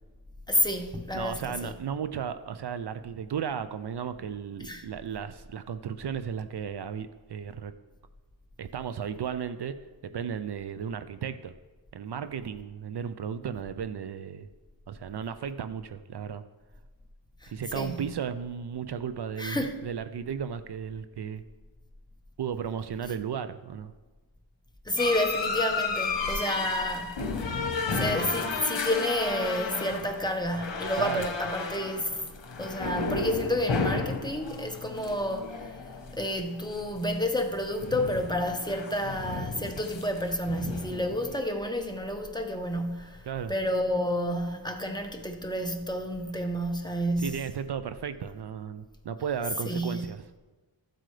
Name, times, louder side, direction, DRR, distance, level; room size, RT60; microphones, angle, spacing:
voice 1, 0.5-1.7 4.6-4.8 17.4-18.0 19.4-19.8 24.9-27.2 27.9-32.1 32.6-35.8 36.1-47.4 49.6-50.1, left 1 dB, 10° left, 0.9 m, -30 dB
voice 2, 1.1-7.7 8.6-9.8 10.0-11.5 11.9-14.5 14.9-16.4 17.5-21.4 22.4-23.9 31.0-31.3 43.3-43.5 47.2-50.2, right 7 dB, 65° right, 0.5 m, -34 dB
sound 1, 25.0-37.4 37.7-41.4, left 3 dB, 75° left, 1.1 m, -33 dB
13.5 x 7.7 x 3.3 m
wide cardioid pair, 110°, 44 cm